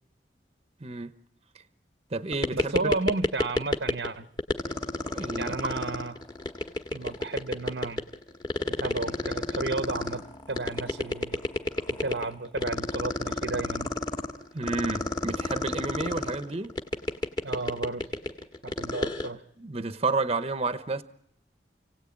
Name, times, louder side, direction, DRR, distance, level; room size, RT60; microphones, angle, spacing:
voice 1, 0.8-1.1 1.5-1.6 2.1-2.9 5.1-5.7 14.5-16.8 19.6-21.0, right 3 dB, 35° right, 0.9 m, -31 dB
sound 1, 2.3-4.1 4.4-19.3, left 2 dB, 25° left, 1.7 m, -29 dB
voice 2, 2.5-4.3 5.4-6.1 6.9-8.0 8.8-11.4 11.9-13.9 17.4-18.1 18.6-19.4, right 3 dB, 80° right, 1.0 m, -33 dB
29.5 x 17.5 x 8.7 m
head